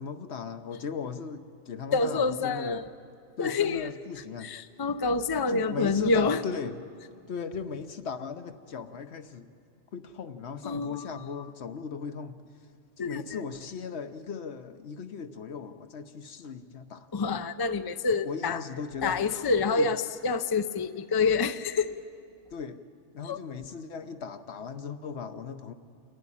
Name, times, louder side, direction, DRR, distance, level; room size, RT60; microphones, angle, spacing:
voice 1, 0.0-2.9 3.4-4.5 5.5-6.8 7.3-9.5 9.9-12.4 13.0-17.1 18.2-19.5 19.8-20.0 22.5-22.8 23.1-25.7, left 6 dB, 70° left, 9 dB, 1.1 m, -37 dB
voice 2, 1.9-2.9 3.4-3.9 4.4-6.4 10.6-11.2 13.0-13.4 17.1-18.6 19.0-21.9 23.2-23.4, left 4 dB, 30° left, 10 dB, 0.4 m, -27 dB
28.5 x 11.5 x 9.9 m, 2.3 s
omnidirectional pair, 1.2 m